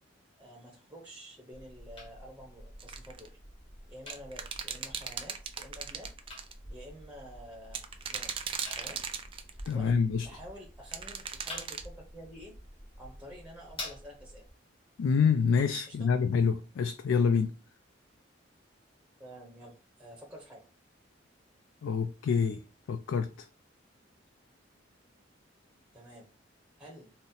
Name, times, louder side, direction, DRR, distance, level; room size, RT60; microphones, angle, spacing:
voice 1, 0.4-3.4 3.9-6.1 6.7-7.8 8.1-8.4 8.8-9.0 9.7-9.9 10.2-12.5 13.0-14.4 15.9-16.0 19.2-19.7 20.0-20.6 25.9-26.3 26.8-27.1, equal, 5° right, 0.8 m, -49 dB
sound 1, 1.5-14.5, left 1 dB, 25° left, 1.3 m, -48 dB
sound 2, 2.8-3.3 4.1-6.5 7.7-9.7 10.9-11.9, right 7 dB, 25° right, 0.3 m, -37 dB
voice 2, 9.7-10.3 15.0-17.5 21.8-22.6 22.9-23.5, left 6 dB, 70° left, 0.3 m, -27 dB
3.9 x 2.0 x 4.1 m
head